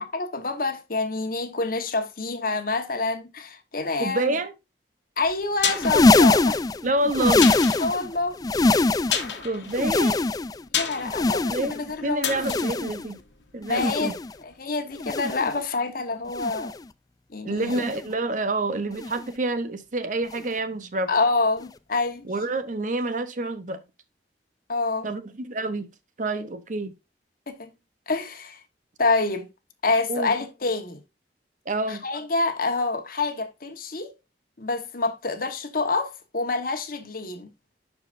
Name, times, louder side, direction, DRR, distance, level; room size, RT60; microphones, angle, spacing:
voice 1, 0.1-4.3 5.2-6.6 7.8-8.4 10.7-12.4 13.7-14.1 14.4-16.7 17.3-17.9 21.1-22.3 24.7-25.1 27.5-27.7 28.1-28.6 29.0-29.5 29.8-31.0 31.9-34.1 34.6-37.5, left 3 dB, 55° left, 1.2 m, -27 dB
voice 2, 4.0-4.5 6.8-7.5 9.4-10.2 11.3-13.2 13.5-14.1 17.4-21.1 22.2-23.8 25.0-25.9 26.2-26.9 30.1-30.3 31.7-32.0, right 2 dB, 45° right, 0.8 m, -28 dB
sound 1, 5.2-14.1 14.4-14.5, left 8 dB, 80° left, 1.2 m, -32 dB
sound 2, 5.7-8.1 8.4-9.3 9.7-10.6 11.0-11.9 12.3-13.1 13.6-14.3 15.0-15.5 16.3-16.8 17.6-18.1 19.0-19.3 20.3-20.5 21.6-21.7, left 2 dB, 20° left, 0.3 m, -23 dB
11.5 x 4.8 x 2.5 m
head